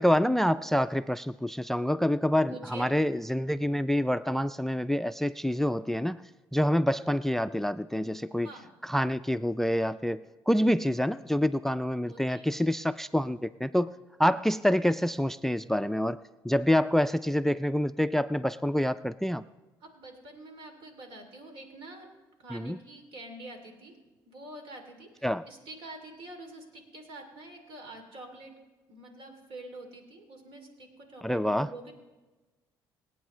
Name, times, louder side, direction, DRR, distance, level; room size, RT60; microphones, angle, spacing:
voice 1, 0.0-6.2 6.5-8.5 8.8-13.9 14.2-16.2 16.4-19.4 22.5-22.8 25.2-25.4 31.2-31.7, equal, 5° left, 15 dB, 0.3 m, -27 dB
voice 2, 2.5-2.9 8.4-8.7 10.6-10.7 12.1-12.5 19.8-22.1 22.4-23.9 24.2-28.5 28.9-31.9, right 2 dB, 70° right, 4 dB, 2.8 m, -46 dB
26.0 x 8.8 x 3.1 m, 1.2 s
cardioid pair, 80°, 9 cm